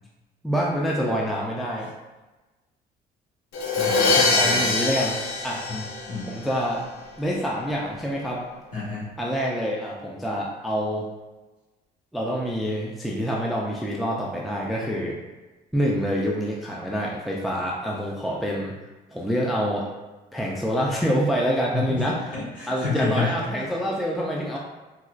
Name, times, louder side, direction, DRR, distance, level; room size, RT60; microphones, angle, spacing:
voice 1, 0.4-1.9 4.2-5.6 6.3-6.9 7.2-8.4 9.2-11.1 12.1-15.2 15.7-18.7 19.1-19.9 20.3-22.1 22.7-24.6, equal, ahead, -3 dB, 0.4 m, -26 dB
Crash cymbal, 3.5-6.5, left 3 dB, 85° left, 0.7 m, -23 dB
voice 2, 3.7-4.7 5.7-5.8 6.1-6.3 8.7-9.1 21.7-22.0 22.3-23.4, left 3 dB, 50° left, -7 dB, 1.5 m, -29 dB
4.2 x 2.3 x 2.4 m, 1.2 s
cardioid pair, 110°, 17 cm